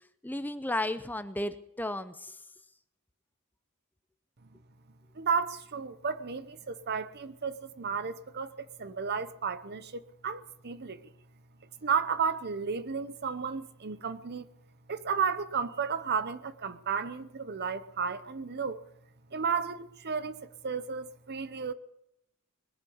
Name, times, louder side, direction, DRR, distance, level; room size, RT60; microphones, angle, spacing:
voice 1, 0.2-2.4, left 1 dB, 10° left, 0.6 m, -34 dB
voice 2, 5.1-11.0 11.8-14.5 14.9-18.8 19.3-21.7, right 6 dB, 50° right, 0.9 m, -33 dB
21.0 x 7.6 x 8.5 m
head